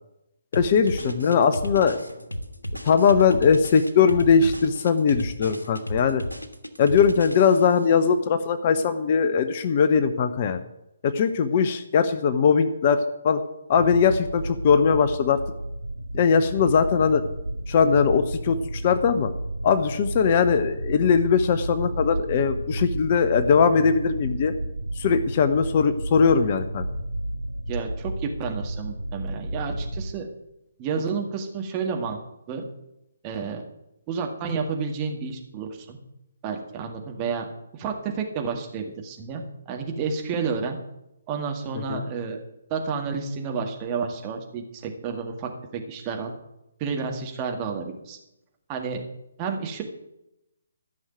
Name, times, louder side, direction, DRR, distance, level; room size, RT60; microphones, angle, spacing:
sound 1, 0.5-7.8, equal, 85° left, 1.6 m, -34 dB
voice 1, 0.5-2.0 2.8-6.2 6.8-10.6 11.0-13.4 13.7-15.4 16.1-17.2 17.7-19.3 19.6-24.5 25.0-26.9 41.9-42.0, left 6 dB, 35° left, 10 dB, 0.7 m, -20 dB
sound 2, 13.8-30.1, right 1 dB, 85° right, 0.6 m, -32 dB
voice 2, 27.7-30.3 30.8-32.2 32.5-32.6 33.2-33.6 34.1-36.0 36.4-37.5 37.7-40.8 41.3-42.4 42.7-46.3 46.8-48.2 48.7-49.0 49.4-49.8, right 5 dB, 25° right, 2 dB, 1.9 m, -30 dB
13.0 x 6.4 x 9.1 m, 0.87 s
figure-of-eight pair, 140°, 0 cm